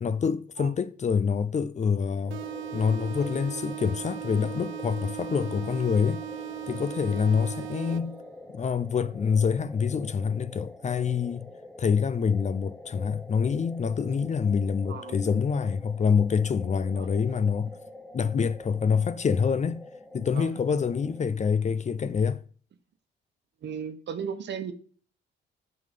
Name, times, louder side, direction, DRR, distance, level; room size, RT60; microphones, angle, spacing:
voice 1, 0.0-2.4 2.7-6.2 6.7-8.2 8.5-11.5 11.8-17.7 18.1-19.8 20.1-22.4, left 6 dB, 35° left, 0.6 m, -26 dB
sound 1, 2.2-21.3, left 2 dB, 5° left, 0.9 m, -46 dB
sound 2, 2.3-7.6, left 6 dB, 65° left, 2.2 m, -47 dB
sound 3, 2.3-8.3, right 17 dB, 90° right, 0.6 m, -38 dB
voice 2, 14.9-15.2 17.0-17.1 20.3-20.6 23.6-24.7, right 7 dB, 60° right, 1.2 m, -35 dB
11.0 x 3.9 x 5.3 m
cardioid pair, 90°, 20 cm